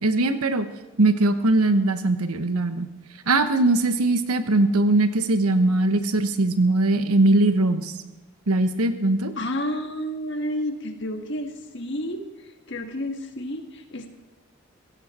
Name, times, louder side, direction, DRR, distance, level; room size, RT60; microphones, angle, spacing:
voice 1, 0.0-0.7 1.0-2.9 3.3-7.9 8.5-9.3, right 2 dB, 90° right, 10 dB, 1.2 m, -20 dB
voice 2, 9.4-12.2 12.7-14.1, left 1 dB, 55° left, 5 dB, 1.6 m, -30 dB
16.0 x 16.0 x 4.3 m, 1.1 s
head